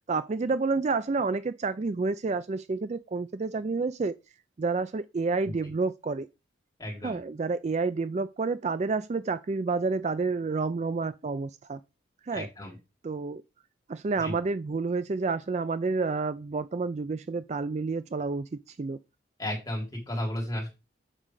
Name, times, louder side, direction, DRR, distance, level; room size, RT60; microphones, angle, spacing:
voice 1, 0.1-4.1 4.6-6.3 7.0-11.8 12.2-12.5 13.0-13.4 13.9-19.0, right 4 dB, 35° right, 0.3 m, -29 dB
voice 2, 6.8-7.2 12.3-12.7 14.2-14.3 19.4-20.7, left 1 dB, 20° left, 3.6 m, -33 dB
7.5 x 5.0 x 4.7 m
head